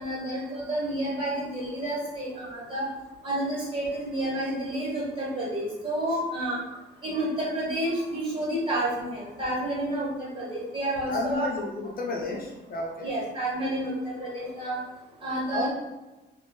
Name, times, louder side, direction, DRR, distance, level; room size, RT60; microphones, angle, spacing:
voice 1, 0.0-2.9 3.2-6.6 7.0-11.5 13.0-14.8 15.2-15.7, right 1 dB, 25° right, -6 dB, 1.4 m, -30 dB
voice 2, 11.1-13.1 15.5-15.7, left 2 dB, 50° left, 0 dB, 0.5 m, -32 dB
3.3 x 2.3 x 2.2 m, 1.1 s
cardioid pair, 90°, 20 cm